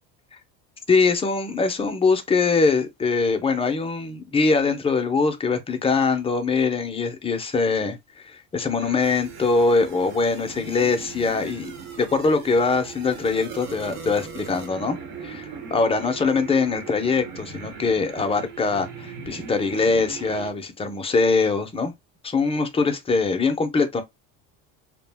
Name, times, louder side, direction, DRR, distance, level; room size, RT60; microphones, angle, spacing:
voice 1, 0.9-8.0 8.2-21.9 22.2-24.0, left 4 dB, 15° left, 0.5 m, -22 dB
sound 1, 8.8-20.5, right 5 dB, 75° right, 1.0 m, -39 dB
2.3 x 2.2 x 3.3 m
supercardioid pair, 110°, 38 cm